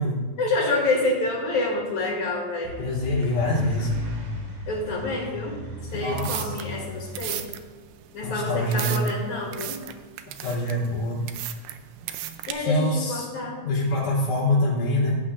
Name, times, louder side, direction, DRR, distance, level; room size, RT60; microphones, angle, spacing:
voice 1, 0.4-2.7 4.7-5.6 5.9-7.4 8.1-9.8 12.5-13.6, left 2 dB, 55° left, -3 dB, 3.5 m, -27 dB
sound 1, 2.6-7.2, equal, 55° right, 3.6 m, -35 dB
voice 2, 2.8-3.9 6.0-6.6 8.2-9.0 10.3-11.3 12.5-13.3 13.6-15.2, left 1 dB, 85° left, -8 dB, 4.9 m, -25 dB
sound 2, 5.9-12.5, right 12 dB, 80° right, 2.0 m, -36 dB
16.5 x 8.5 x 2.5 m, 1.5 s
omnidirectional pair, 4.2 m